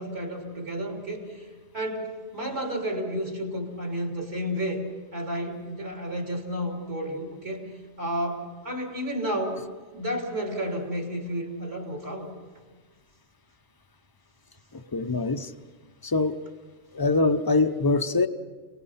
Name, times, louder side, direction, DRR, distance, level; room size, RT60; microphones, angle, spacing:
voice 1, 0.0-1.5 1.7-4.8 5.1-7.7 8.0-9.6 9.9-12.3, equal, 65° right, 1 dB, 3.7 m, -31 dB
voice 2, 14.9-15.5 16.0-16.4 16.9-18.3, left 3 dB, 25° left, 10 dB, 0.7 m, -23 dB
29.0 x 19.0 x 5.7 m, 1.4 s
omnidirectional pair, 1.2 m